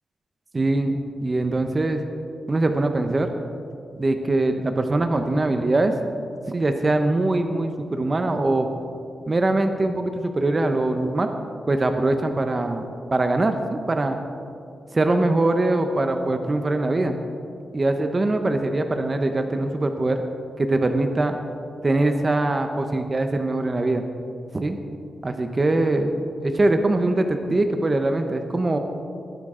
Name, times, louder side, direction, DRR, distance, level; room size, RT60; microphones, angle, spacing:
voice 1, 0.5-2.0 2.5-3.3 4.0-6.0 6.5-8.7 9.3-11.3 11.7-14.2 14.9-17.2 17.7-20.2 20.6-21.4 21.8-24.0 24.5-24.8 25.2-28.8, right 2 dB, 25° right, 6 dB, 0.8 m, -22 dB
19.0 x 10.5 x 3.7 m, 2.5 s
wide cardioid pair, 145°, 0 cm